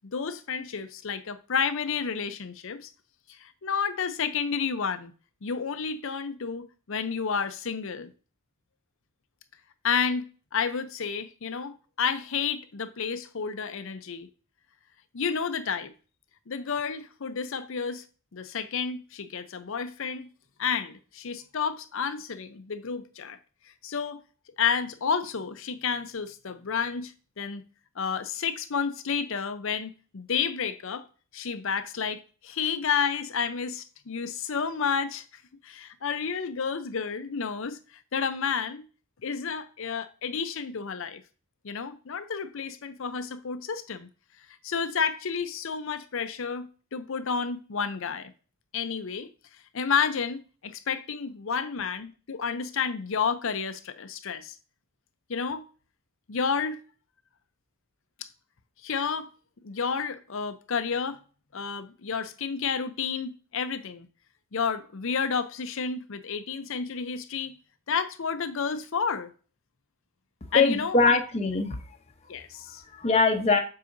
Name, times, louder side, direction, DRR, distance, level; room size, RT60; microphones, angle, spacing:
voice 1, 0.0-2.9 3.3-5.1 5.4-8.1 9.8-14.3 15.1-15.9 16.5-18.0 18.3-20.3 20.6-23.4 23.8-24.2 24.6-27.6 28.0-31.0 31.3-35.2 35.6-38.8 39.2-41.2 41.6-44.1 44.6-48.3 48.7-49.3 49.7-54.6 55.3-55.6 56.3-56.8 58.8-59.3 59.6-61.2 61.5-64.1 64.5-67.6 67.9-69.3 70.5-71.2 72.3-72.8, left 6 dB, 65° left, 0.6 m, -30 dB
voice 2, 70.5-71.8 72.6-73.6, left 4 dB, 30° left, 0.8 m, -23 dB
7.6 x 4.8 x 2.6 m
head